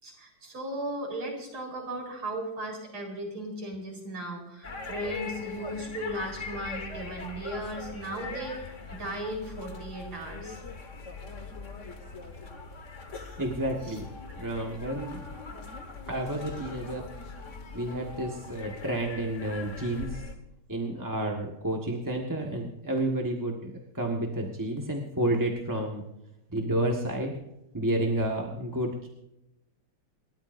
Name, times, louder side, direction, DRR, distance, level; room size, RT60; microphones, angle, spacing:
voice 1, 0.0-10.6 13.9-14.0, right 1 dB, 70° right, 0 dB, 5.4 m, -36 dB
sound 1, 4.6-20.3, left 4 dB, 35° left, 1.8 m, -41 dB
voice 2, 13.4-14.1 14.4-15.3 16.1-17.1 17.7-20.2 20.7-26.0 26.5-27.4 27.7-29.1, right 1 dB, 10° right, 0 dB, 1.3 m, -30 dB
28.5 x 13.0 x 2.7 m, 0.87 s
omnidirectional pair, 2.4 m